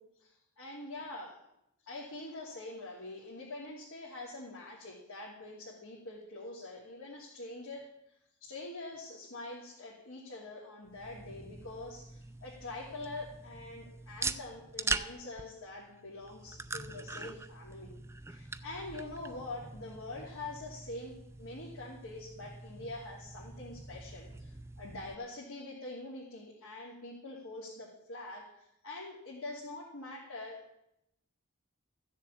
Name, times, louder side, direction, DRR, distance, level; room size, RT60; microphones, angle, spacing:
voice 1, 0.0-1.4 1.8-7.9 8.4-17.9 18.3-28.5 28.8-30.6, left 2 dB, 70° left, -5 dB, 2.8 m, -45 dB
sound 1, 10.9-25.1, right 3 dB, 10° right, 0.5 m, -43 dB
14.0 x 7.3 x 8.5 m, 0.81 s
head